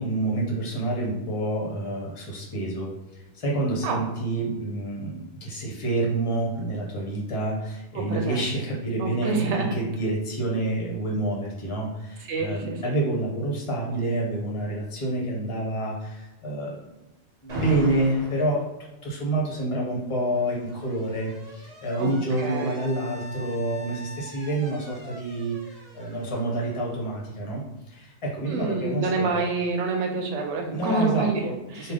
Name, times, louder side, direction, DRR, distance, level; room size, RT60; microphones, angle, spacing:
voice 1, 0.0-2.9 3.3-16.8 17.4-18.6 19.0-27.6 27.9-29.4 30.7-31.9, right 2 dB, 30° left, -2 dB, 0.9 m, -28 dB
voice 2, 7.9-8.5 9.0-9.8 12.3-12.9 22.0-22.8 28.4-31.4 31.7-31.9, right 3 dB, 85° right, 3 dB, 0.9 m, -27 dB
Alarm, 17.5-18.5 19.7-27.4, right 1 dB, 45° right, 0.7 m, -41 dB
3.4 x 2.3 x 3.8 m, 1.0 s
omnidirectional pair, 1.2 m